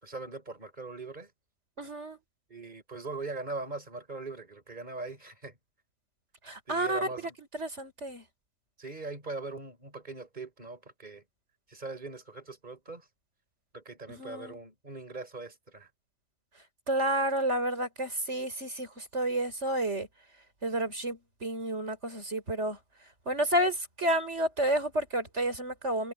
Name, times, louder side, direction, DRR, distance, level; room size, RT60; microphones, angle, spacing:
voice 1, 0.0-1.3 2.5-5.6 6.7-7.3 8.8-11.2 11.7-13.1 13.7-15.9, right 3 dB, 35° right, 4.8 m, -41 dB
voice 2, 1.8-2.2 6.4-7.1 7.5-8.2 14.1-14.6 16.9-20.1 20.6-22.8 23.3-26.1, right 1 dB, 70° right, 5.3 m, -30 dB
omnidirectional pair, 1.3 m